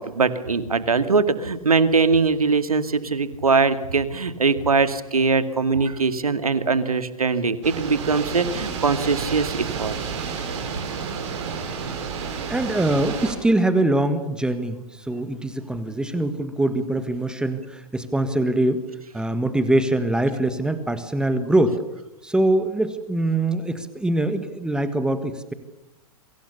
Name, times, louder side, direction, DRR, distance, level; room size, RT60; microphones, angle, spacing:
voice 1, 0.0-9.9, right 4 dB, 70° right, 10 dB, 2.3 m, -21 dB
sound 1, 7.6-13.3, right 6 dB, 50° right, 7.0 m, -30 dB
voice 2, 12.5-18.9 19.1-21.8 22.2-25.5, right 1 dB, 5° right, 11 dB, 1.6 m, -23 dB
28.5 x 24.5 x 6.9 m, 0.90 s
figure-of-eight pair, 105°, 19 cm